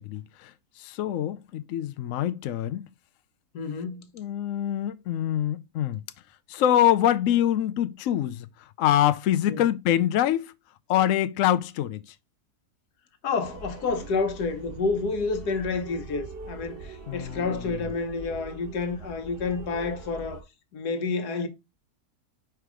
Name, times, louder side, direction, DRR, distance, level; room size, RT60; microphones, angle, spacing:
voice 1, 0.0-2.9 4.1-6.0 6.5-10.5 10.9-12.1 17.1-17.8, left 11 dB, 70° left, 0.9 m, -25 dB
voice 2, 3.5-4.1 9.5-9.6 13.2-20.4 20.7-21.5, left 4 dB, 90° left, 1.5 m, -29 dB
sound 1, 13.4-20.4, right 3 dB, 40° right, 1.4 m, -42 dB
4.7 x 4.6 x 4.9 m
omnidirectional pair, 1.6 m